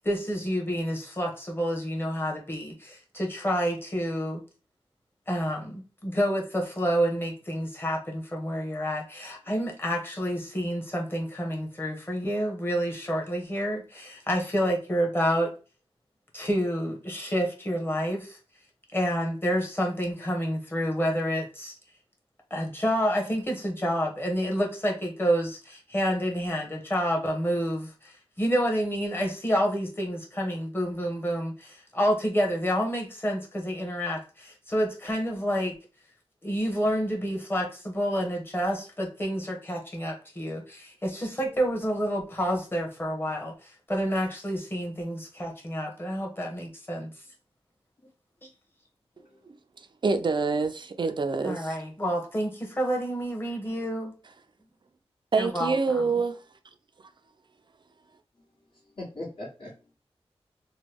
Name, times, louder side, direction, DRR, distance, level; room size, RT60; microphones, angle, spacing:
voice 1, 0.0-4.4 5.3-15.5 16.3-18.4 18.9-21.7 22.5-35.7 36.4-47.1 51.4-54.1 55.4-55.7, equal, 20° left, 1.1 m, -29 dB
voice 2, 49.2-49.6 58.4-59.9, left 1 dB, 60° left, 1.5 m, -42 dB
voice 3, 49.8-51.8 55.3-56.4, right 4 dB, 50° right, 0.4 m, -26 dB
3.0 x 2.2 x 3.3 m
wide cardioid pair, 80°, 10 cm